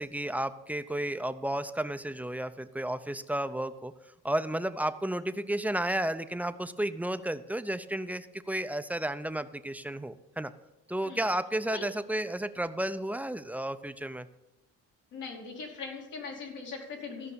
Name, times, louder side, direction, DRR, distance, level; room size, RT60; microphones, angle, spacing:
voice 1, 0.0-3.9 4.2-10.5 10.9-14.3, right 1 dB, 5° right, 11 dB, 0.6 m, -32 dB
voice 2, 15.1-17.3, left 4 dB, 80° left, -1 dB, 2.9 m, -40 dB
14.0 x 5.5 x 6.9 m, 1.0 s
cardioid pair, 90°, 30 cm